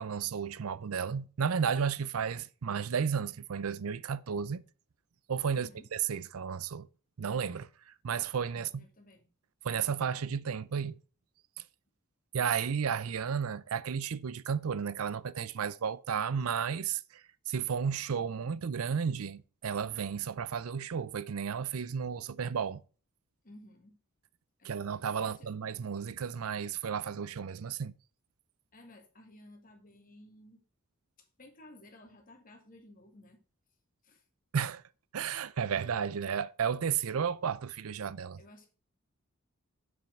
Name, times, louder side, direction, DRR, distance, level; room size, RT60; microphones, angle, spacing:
voice 1, 0.0-4.6 5.3-6.9 7.2-8.8 9.6-11.0 12.3-22.8 24.6-27.9 34.5-34.8 35.1-38.4, right 7 dB, 75° right, 0.5 m, -33 dB
voice 2, 5.5-5.9 8.5-9.2 23.4-24.0 24.6-24.9 25.2-25.5 28.7-30.6 31.2-33.4 34.0-34.2 38.4-38.7, left 1 dB, 40° left, 2.2 m, -55 dB
7.3 x 5.8 x 5.2 m
head